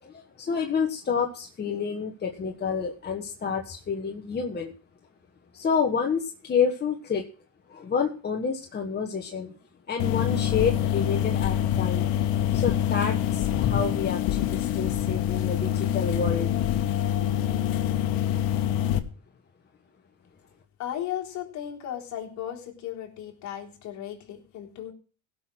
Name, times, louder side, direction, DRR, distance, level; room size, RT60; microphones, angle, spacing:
voice 1, 0.0-4.7 5.5-7.2 7.7-9.5 9.9-12.1 12.5-16.5, left 6 dB, 25° left, 2 dB, 1.4 m, -29 dB
sound 1, 10.0-19.0, left 10 dB, 65° left, 1.4 m, -25 dB
voice 2, 20.8-24.9, left 11 dB, 50° left, -1 dB, 3.7 m, -35 dB
17.0 x 6.2 x 6.2 m, 0.38 s
supercardioid pair, 110°, 38 cm